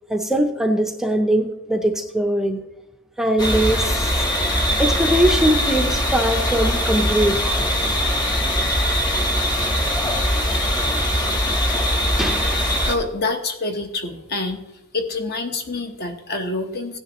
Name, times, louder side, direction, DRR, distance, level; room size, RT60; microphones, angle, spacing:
voice 1, 0.1-2.7 3.2-4.1 4.8-7.4 12.2-12.6, right 1 dB, ahead, 4 dB, 0.6 m, -21 dB
sound 1, 3.4-13.0, equal, 20° left, 1.2 m, -21 dB
voice 2, 12.8-14.6 14.9-17.0, left 3 dB, 45° left, 5 dB, 1.1 m, -26 dB
16.0 x 9.7 x 3.0 m, 0.94 s
head